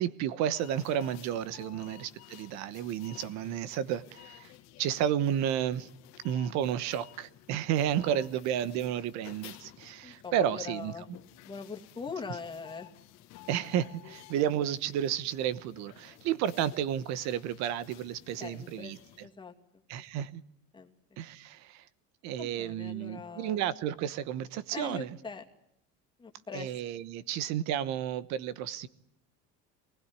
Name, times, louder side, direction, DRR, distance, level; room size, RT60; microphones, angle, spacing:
voice 1, 0.0-4.5 4.8-5.9 6.2-10.9 13.5-19.0 19.9-20.4 21.2-21.9 22.2-25.1 26.5-28.9, right 10 dB, 65° right, 1.1 m, -32 dB
sound 1, 0.5-19.3, left 15 dB, 60° left, 1.8 m, -54 dB
voice 2, 10.0-11.1 11.4-12.9 18.4-19.0 19.2-19.5 20.0-20.1 20.7-20.9 22.4-23.6 24.7-25.4 26.2-26.7, left 5 dB, 15° left, 2.4 m, -42 dB
24.5 x 19.5 x 9.8 m
cardioid pair, 155°, 30 cm